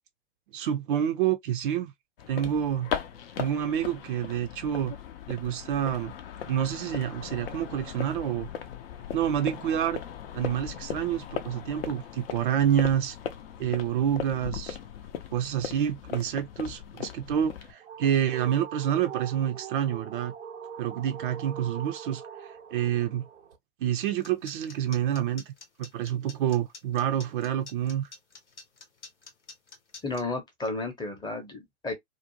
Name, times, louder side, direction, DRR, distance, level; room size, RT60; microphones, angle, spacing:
voice 1, 0.5-1.9 2.3-2.9 3.4-4.9 5.3-6.1 6.4-8.5 9.1-10.0 10.3-13.2 13.6-14.8 15.3-20.3 20.8-23.2 23.8-25.5 25.8-28.1, right 10 dB, 50° right, 0.5 m, -28 dB
sound 1, 2.2-17.7, left 9 dB, 55° left, 0.6 m, -38 dB
sound 2, 17.4-23.6, right 8 dB, 85° right, 0.7 m, -43 dB
sound 3, 24.0-30.2, left 4 dB, 85° left, 0.8 m, -47 dB
voice 2, 30.0-31.9, left 3 dB, 10° left, 0.7 m, -33 dB
2.5 x 2.1 x 2.7 m
figure-of-eight pair, 100°, 34 cm